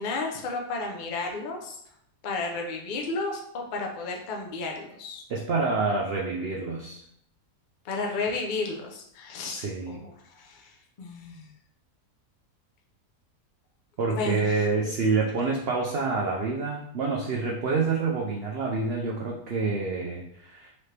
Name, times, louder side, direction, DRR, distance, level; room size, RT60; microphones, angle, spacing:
voice 1, 0.0-1.8 2.2-5.2 7.8-11.5 14.1-14.7 15.3-15.4, left 3 dB, 60° left, 1 dB, 0.5 m, -33 dB
voice 2, 5.3-7.0 9.5-10.0 14.0-20.7, right 4 dB, 85° right, -2 dB, 0.5 m, -27 dB
4.2 x 2.9 x 3.2 m, 0.74 s
omnidirectional pair, 1.7 m